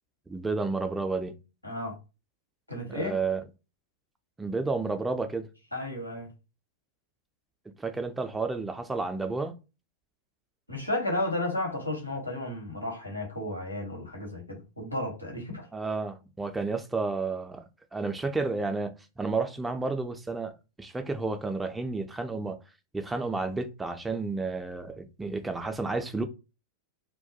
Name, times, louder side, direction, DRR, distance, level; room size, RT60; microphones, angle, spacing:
voice 1, 0.3-1.4 2.9-3.4 4.4-5.5 7.8-9.5 15.7-17.6 17.9-22.6 22.9-26.2, right 3 dB, 10° right, 0.3 m, -31 dB
voice 2, 1.6-2.0 2.7-3.2 5.7-6.3 10.7-15.7, left 1 dB, 90° left, 1.0 m, -33 dB
2.2 x 2.2 x 2.6 m
figure-of-eight pair, 90°, 0 cm